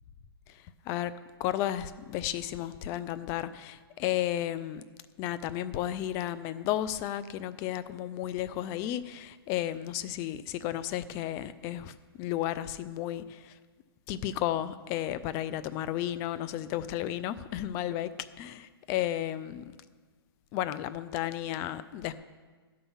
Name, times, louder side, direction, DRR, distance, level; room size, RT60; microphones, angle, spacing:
voice 1, 0.5-1.1 1.4-4.8 5.2-13.6 14.1-18.1 18.4-19.6 20.5-22.1, left 12 dB, 20° left, 14 dB, 0.4 m, -33 dB
12.5 x 5.6 x 7.1 m, 1.4 s
hypercardioid pair, 150°, 13 cm